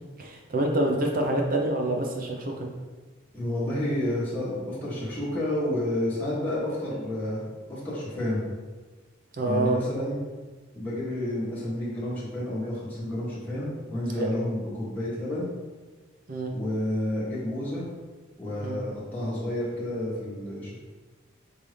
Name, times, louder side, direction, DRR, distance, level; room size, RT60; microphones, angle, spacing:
voice 1, 0.2-2.7 9.4-9.8 14.2-14.3 16.3-16.5 18.6-18.8, right 1 dB, 45° right, 1 dB, 0.6 m, -26 dB
voice 2, 3.3-8.4 9.4-10.2 10.7-15.5 16.5-17.8 18.4-20.7, left 1 dB, 10° left, -10 dB, 1.3 m, -30 dB
5.5 x 2.7 x 3.2 m, 1.3 s
head